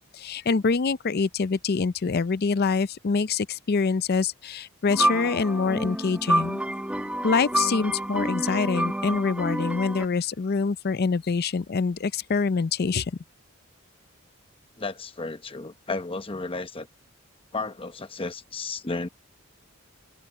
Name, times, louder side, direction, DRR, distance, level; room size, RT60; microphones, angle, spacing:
voice 1, 0.0-6.6 7.2-13.2, left 4 dB, 45° left, 0.5 m, -25 dB
sound 1, 4.9-10.1, right 1 dB, 5° right, 1.2 m, -28 dB
voice 2, 14.8-16.9 17.5-19.1, left 3 dB, 25° left, 1.0 m, -33 dB
open air
head